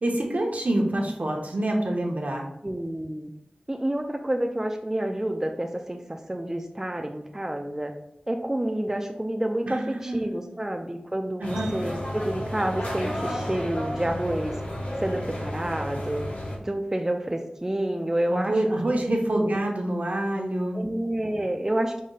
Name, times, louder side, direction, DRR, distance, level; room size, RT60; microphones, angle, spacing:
voice 1, 0.0-2.5 9.7-10.5 11.4-11.7 18.3-20.8, right 1 dB, 65° right, 0 dB, 0.8 m, -27 dB
voice 2, 2.6-3.3 3.7-7.9 8.3-14.5 15.0-16.2 16.6-18.5 18.8-19.0 19.3-19.6 20.7-22.0, right 1 dB, 15° right, 3 dB, 0.4 m, -29 dB
sound 1, 11.4-16.6, equal, 65° left, 1.0 m, -32 dB
5.0 x 2.1 x 3.9 m, 0.79 s
wide cardioid pair, 55°, 3 cm